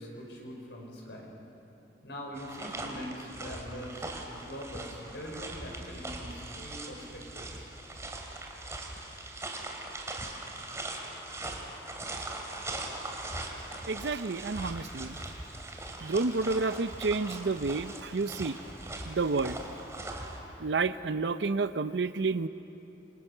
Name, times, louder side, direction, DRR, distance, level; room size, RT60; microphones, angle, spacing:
voice 1, 0.0-1.3 2.0-7.7, equal, 80° left, 0 dB, 5.5 m, -43 dB
sound 1, 2.3-20.4, right 2 dB, 15° right, 2.5 m, -40 dB
voice 2, 13.9-15.2 16.0-18.6 19.0-19.6 20.6-22.5, right 3 dB, 75° right, 12 dB, 0.6 m, -30 dB
27.0 x 23.5 x 6.7 m, 3.0 s
head